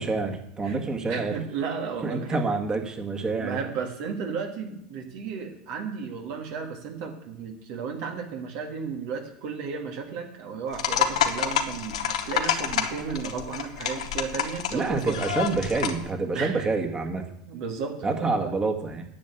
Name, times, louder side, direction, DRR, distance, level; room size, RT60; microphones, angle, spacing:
voice 1, 0.0-1.3 2.0-3.6 14.7-17.3 18.0-19.1, right 3 dB, 20° right, 4 dB, 2.0 m, -27 dB
voice 2, 1.1-2.4 3.4-15.2 16.3-16.7 17.4-18.5, right 6 dB, 60° right, 3 dB, 2.2 m, -34 dB
sound 1, 10.7-16.1, left 8 dB, 80° left, 1.2 m, -28 dB
10.0 x 6.5 x 8.2 m, 0.77 s
hypercardioid pair, 90°, 3 cm